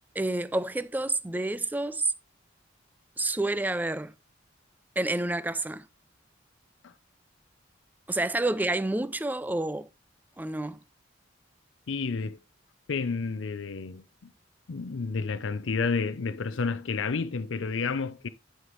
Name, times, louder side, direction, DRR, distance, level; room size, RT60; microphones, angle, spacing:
voice 1, 0.2-2.1 3.2-4.1 5.0-5.9 8.1-9.9 10.4-10.8, right 2 dB, 10° right, 0.4 m, -29 dB
voice 2, 11.9-12.4 12.9-14.0 14.7-18.3, left 4 dB, 75° left, 0.5 m, -30 dB
11.0 x 5.6 x 3.1 m
head